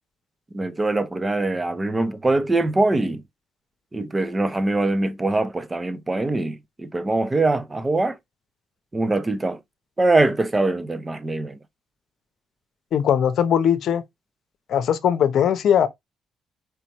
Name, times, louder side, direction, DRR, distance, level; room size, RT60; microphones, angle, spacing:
voice 1, 0.5-3.2 3.9-8.2 8.9-9.6 10.0-11.6, right 2 dB, 20° right, 0.7 m, -23 dB
voice 2, 12.9-14.0 14.7-15.9, left 9 dB, 70° left, 0.8 m, -19 dB
4.7 x 3.1 x 3.0 m
cardioid pair, 90°, 0 cm